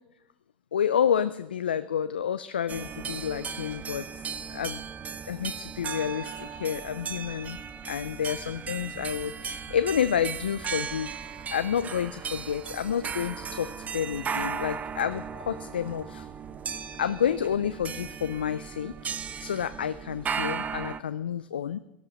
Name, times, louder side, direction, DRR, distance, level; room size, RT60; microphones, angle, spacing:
voice 1, 0.7-4.1 4.5-4.8 5.2-7.6 7.9-11.2 11.5-16.3 17.0-21.8, left 8 dB, 85° left, 13 dB, 0.4 m, -29 dB
sound 1, 2.7-21.0, right 6 dB, 30° right, 0.9 m, -36 dB
17.0 x 12.5 x 5.3 m, 0.93 s
hypercardioid pair, 80°, 5 cm